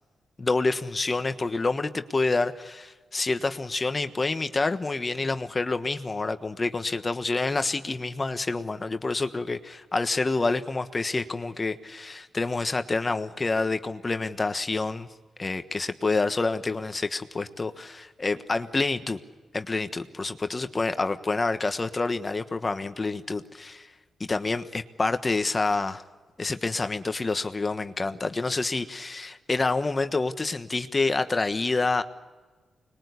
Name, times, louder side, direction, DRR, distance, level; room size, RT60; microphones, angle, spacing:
voice 1, 0.4-15.1 15.4-19.2 19.5-23.9 24.2-26.0 26.4-32.0, left 3 dB, 35° left, 1.3 m, -28 dB
25.5 x 21.5 x 8.3 m
cardioid pair, 60°, 0 cm